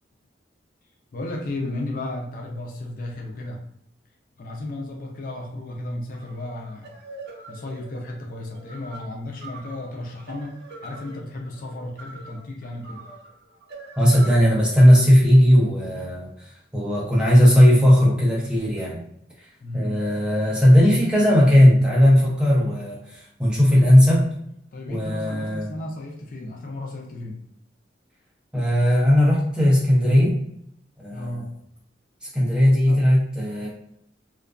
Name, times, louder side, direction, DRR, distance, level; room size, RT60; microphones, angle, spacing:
voice 1, 1.1-3.6 4.4-6.9 7.5-10.6 10.8-13.0 19.6-19.9 24.7-27.4 31.1-31.6 32.9-33.0, left 1 dB, 50° left, 0 dB, 0.4 m, -34 dB
sound 1, 6.1-14.4, right 3 dB, 60° right, 0.6 m, -43 dB
voice 2, 14.0-19.0 19.7-24.2 24.9-25.7 28.5-30.4 31.0-31.4 32.2-33.7, equal, 5° right, -5 dB, 0.6 m, -17 dB
2.4 x 2.2 x 2.3 m, 0.72 s
head